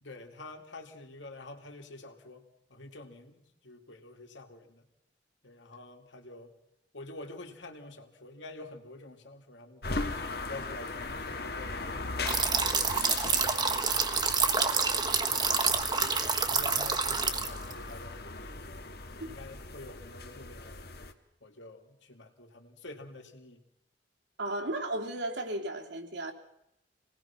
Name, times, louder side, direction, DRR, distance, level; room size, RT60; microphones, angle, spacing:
voice 1, 0.0-4.9 5.4-6.5 6.9-10.2 10.5-15.1 15.4-16.1 16.5-18.7 19.1-21.0 21.4-23.6, left 2 dB, 80° left, 4 dB, 2.6 m, -48 dB
sound 1, 9.8-21.1, left 3 dB, 55° left, 1.6 m, -38 dB
sound 2, 12.3-17.7, right 5 dB, 25° right, 1.3 m, -28 dB
voice 2, 24.4-26.3, right 1 dB, 80° right, 1 dB, 3.3 m, -34 dB
27.0 x 19.0 x 5.9 m, 0.80 s
head